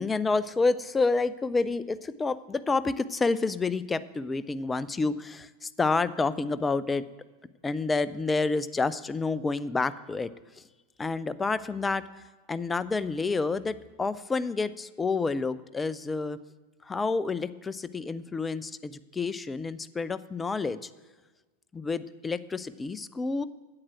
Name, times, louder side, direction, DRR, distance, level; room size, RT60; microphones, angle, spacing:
voice 1, 0.0-7.0 7.6-10.3 10.6-10.7 11.0-12.0 12.5-16.4 16.8-20.9 21.7-23.4, left 3 dB, 15° left, 16 dB, 0.4 m, -29 dB
8.7 x 8.6 x 6.0 m, 1.3 s
figure-of-eight pair, 90°, 0 cm